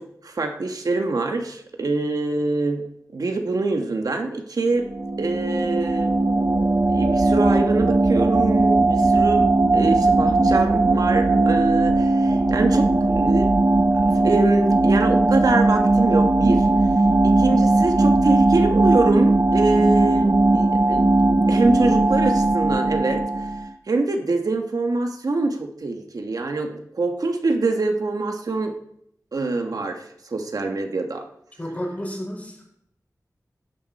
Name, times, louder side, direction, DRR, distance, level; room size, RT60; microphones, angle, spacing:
voice 1, 0.0-2.9 3.1-4.9 5.2-13.5 14.1-16.7 17.2-21.1 21.5-23.5 23.9-28.7 29.3-31.2, right 3 dB, 75° right, 4 dB, 1.5 m, -24 dB
sound 1, 4.8-23.7, right 2 dB, 40° right, 0.6 m, -18 dB
voice 2, 31.6-32.7, equal, 25° left, -1 dB, 5.3 m, -31 dB
16.0 x 10.5 x 4.3 m, 0.73 s
wide cardioid pair, 90°, 6 cm